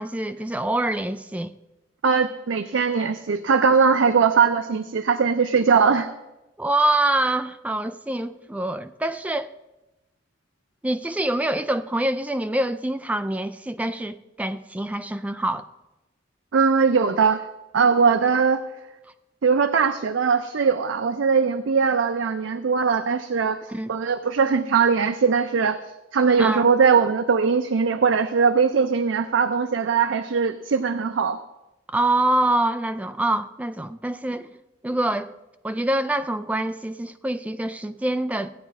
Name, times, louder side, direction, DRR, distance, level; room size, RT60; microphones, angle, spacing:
voice 1, 0.0-1.5 6.6-9.5 10.8-15.7 23.7-23.9 26.4-26.7 31.9-34.5 34.8-35.3 35.6-38.5, right 1 dB, 10° right, 0.3 m, -25 dB
voice 2, 2.0-6.1 16.5-17.4 17.7-18.6 19.4-23.6 23.9-25.8 26.1-31.4, right 5 dB, 90° right, 0.5 m, -20 dB
15.0 x 9.2 x 3.6 m
head